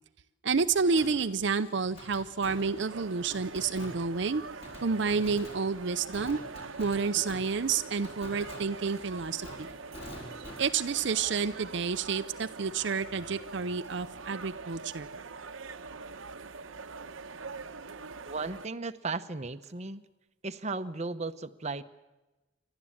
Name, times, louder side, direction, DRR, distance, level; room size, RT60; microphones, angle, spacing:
voice 1, 0.4-4.4 4.8-6.4 6.8-9.7 10.6-15.1, right 5 dB, 60° right, 9 dB, 0.6 m, -29 dB
Fireworks, 1.0-12.6 12.9-13.0 19.6-19.7, left 1 dB, 30° left, 4.9 m, -49 dB
sound 1, 2.5-18.7, right 4 dB, 85° right, 1.0 m, -44 dB
voice 2, 18.2-20.0 20.4-21.8, right 3 dB, 35° right, 10 dB, 0.8 m, -35 dB
28.5 x 12.5 x 8.6 m, 1.1 s
head